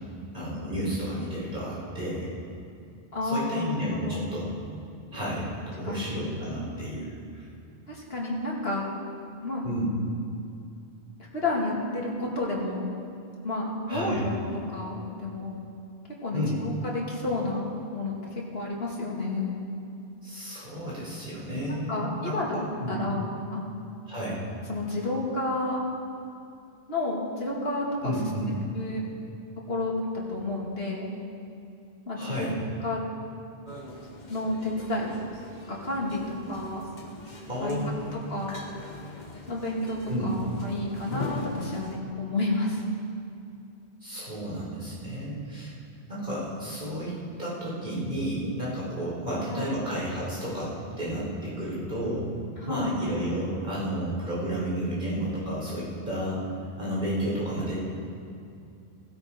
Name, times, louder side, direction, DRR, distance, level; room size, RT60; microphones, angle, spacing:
voice 1, 0.3-2.3 3.2-4.5 5.1-7.5 9.6-9.9 13.9-14.3 16.3-16.6 20.2-22.4 22.8-23.0 24.1-24.4 28.0-28.5 32.2-32.5 37.5-38.1 40.1-40.4 44.0-45.7 46.1-52.3 52.7-56.4 56.8-57.8, right 1 dB, 50° right, -7 dB, 5.0 m, -32 dB
voice 2, 3.1-4.4 5.8-6.1 7.9-8.9 9.4-9.6 11.3-12.9 13.4-14.4 14.7-15.6 16.2-18.1 18.5-19.6 21.9-22.6 22.9-23.6 24.7-25.8 26.9-28.2 28.7-29.0 29.7-29.9 30.3-31.1 32.1-32.5 32.8-33.0 34.3-35.2 35.7-36.8 37.6-37.8 38.3-38.6 39.5-40.0 40.2-42.8 49.5-49.8 52.6-53.0, left 2 dB, 65° left, -4 dB, 2.9 m, -30 dB
sound 1, 33.7-42.0, left 2 dB, 45° left, 1.4 m, -41 dB
16.0 x 16.0 x 4.5 m, 2.6 s
omnidirectional pair, 1.1 m